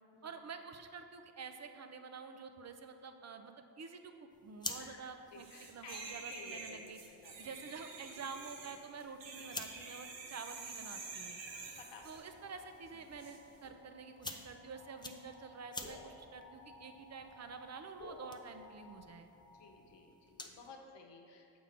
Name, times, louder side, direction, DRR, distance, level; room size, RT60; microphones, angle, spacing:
voice 1, 0.2-4.1 4.4-7.0 7.4-11.4 12.0-19.3, right 5 dB, 40° right, 7 dB, 0.6 m, -49 dB
sound 1, 4.3-20.7, left 2 dB, 10° left, 0.5 m, -52 dB
voice 2, 4.7-7.5 11.5-12.2 12.9-13.2 14.2-14.5 19.5-21.6, left 4 dB, 80° left, 2 dB, 1.0 m, -55 dB
sound 2, 5.4-12.3 13.2-13.4, right 4 dB, 85° right, 1.1 m, -48 dB
sound 3, 11.5-20.2, left 2 dB, 40° left, 1.1 m, -57 dB
7.2 x 3.7 x 5.8 m, 2.5 s
cardioid pair, 80°, 43 cm